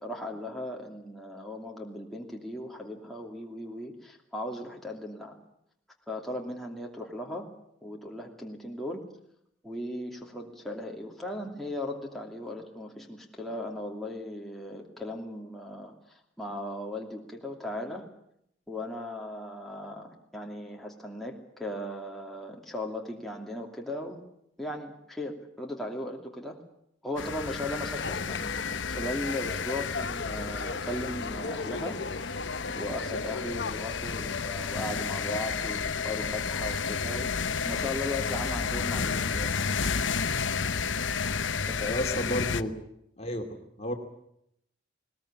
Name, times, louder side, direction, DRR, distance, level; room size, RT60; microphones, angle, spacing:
voice 1, 0.0-5.4 6.1-7.5 7.8-9.0 9.6-18.0 18.7-24.2 24.6-26.6 27.0-32.4 32.7-37.3 37.6-39.8 41.6-42.1, left 1 dB, ahead, -1 dB, 2.8 m, -37 dB
sound 1, 27.2-42.6, left 5 dB, 85° left, 1.0 m, -31 dB
sound 2, 28.0-33.7, left 4 dB, 60° left, 1.0 m, -37 dB
voice 2, 41.9-42.7 43.2-43.4 43.8-43.9, left 1 dB, 35° left, 3 dB, 2.6 m, -31 dB
20.5 x 20.0 x 8.7 m, 0.74 s
head